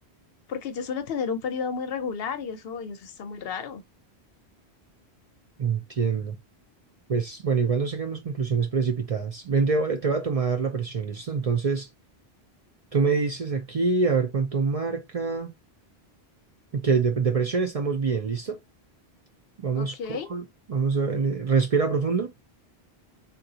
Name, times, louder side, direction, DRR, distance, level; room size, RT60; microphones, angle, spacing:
voice 1, 0.5-3.8 19.7-20.3, left 6 dB, 70° left, 0.8 m, -32 dB
voice 2, 5.6-6.4 7.1-11.9 12.9-15.5 16.7-18.6 19.6-22.3, right 5 dB, 45° right, 0.5 m, -25 dB
3.8 x 2.3 x 2.7 m
omnidirectional pair, 1.1 m